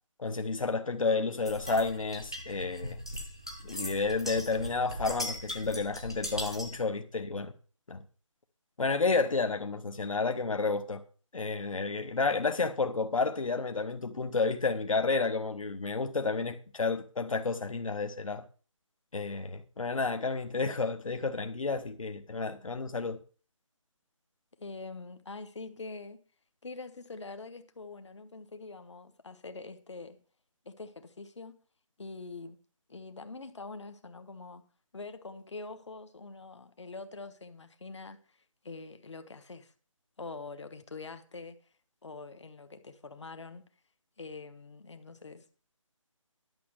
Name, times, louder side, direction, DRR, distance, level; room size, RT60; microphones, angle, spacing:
voice 1, 0.2-3.0 3.6-7.5 7.9-8.0 8.8-11.0 11.3-18.4 19.1-23.2, left 4 dB, 75° left, 1.2 m, -31 dB
sound 1, 1.4-6.8, left 1 dB, 10° left, 0.5 m, -39 dB
voice 2, 24.6-26.2 26.6-30.2 30.6-31.6 32.0-32.6 32.9-34.7 34.9-39.7 40.2-41.6 42.0-43.7 44.2-45.4, left 3 dB, 60° left, 1.3 m, -44 dB
11.0 x 6.3 x 6.2 m
figure-of-eight pair, 175°, 17 cm